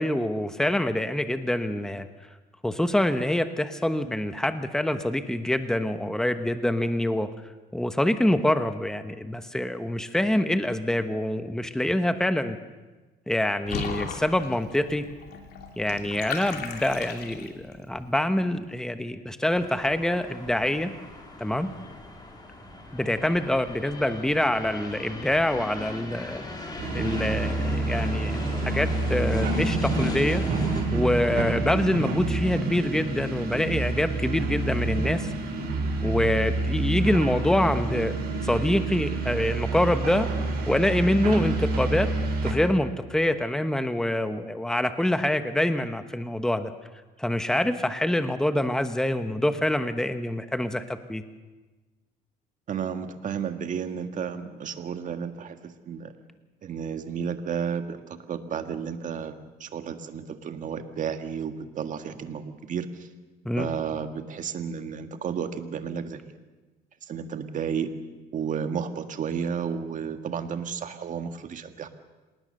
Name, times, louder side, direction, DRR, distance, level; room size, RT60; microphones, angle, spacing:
voice 1, 0.0-2.1 2.6-7.3 7.7-12.6 13.3-15.1 15.8-20.9 21.4-21.7 22.9-26.5 26.9-30.4 30.9-35.3 36.0-38.1 38.4-40.3 40.7-42.1 42.4-46.7 47.2-51.2 63.4-63.7, left 1 dB, 5° left, 9 dB, 1.2 m, -25 dB
Water / Bathtub (filling or washing), 13.7-17.7, left 6 dB, 70° left, 2.8 m, -36 dB
sound 1, 19.5-30.8, left 2 dB, 25° left, 4.5 m, -38 dB
sound 2, 26.8-42.5, right 3 dB, 65° right, 7.1 m, -28 dB
voice 2, 52.7-55.6 55.9-56.1 56.6-59.3 59.6-63.1 63.6-66.2 67.1-67.9 68.3-71.9, right 7 dB, 50° right, 8 dB, 1.8 m, -32 dB
27.0 x 19.0 x 6.6 m, 1.2 s
cardioid pair, 110°, 17 cm